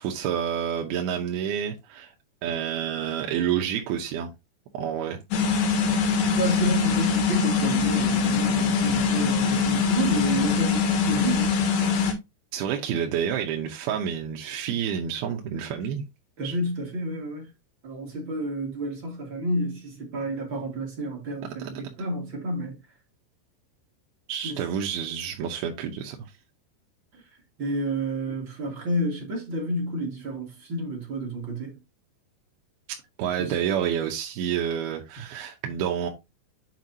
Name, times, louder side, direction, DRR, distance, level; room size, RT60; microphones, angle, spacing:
voice 1, 0.0-2.1 2.4-4.3 4.7-5.2 12.5-16.1 16.4-16.6 21.6-21.7 24.3-26.2 33.2-36.1, right 9 dB, 75° right, 2.5 m, -29 dB
sound 1, 5.3-12.1, left 5 dB, 80° left, 3.5 m, -23 dB
voice 2, 6.3-11.6 16.4-17.5 17.8-22.8 24.4-24.6 27.1-27.2 27.6-31.7 33.4-33.5, right 1 dB, 40° right, 1.8 m, -30 dB
7.5 x 5.8 x 2.7 m
omnidirectional pair, 4.9 m